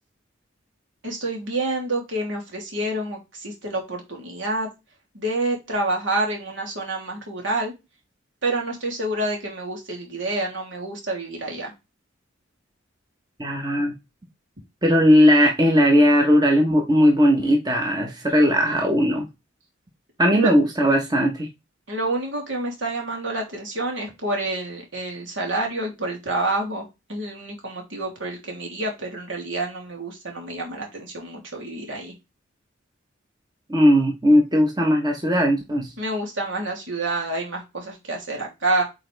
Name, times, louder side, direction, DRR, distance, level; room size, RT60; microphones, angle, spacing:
voice 1, 1.0-4.7 5.1-7.7 8.4-11.7 20.3-20.5 21.9-32.1 36.0-38.8, right 2 dB, 65° right, 0 dB, 3.1 m, -28 dB
voice 2, 13.4-13.9 14.8-19.3 20.2-21.5 33.7-35.9, equal, 20° right, 1 dB, 1.2 m, -18 dB
8.7 x 4.0 x 3.4 m, 0.24 s
head